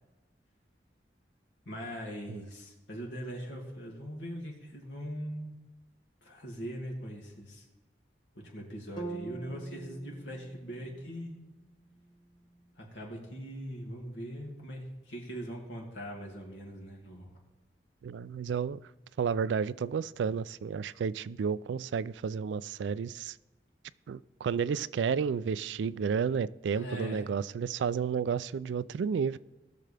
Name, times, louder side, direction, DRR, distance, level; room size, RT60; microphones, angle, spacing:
voice 1, 1.6-5.5 6.2-7.6 8.4-11.3 12.8-17.3 26.7-27.3, equal, 85° left, 2.5 m, -41 dB
sound 1, 9.0-13.0, right 3 dB, 25° left, 0.8 m, -46 dB
voice 2, 18.0-18.8 19.2-23.4 24.1-29.4, right 6 dB, 85° right, 0.3 m, -31 dB
19.0 x 6.6 x 3.4 m
head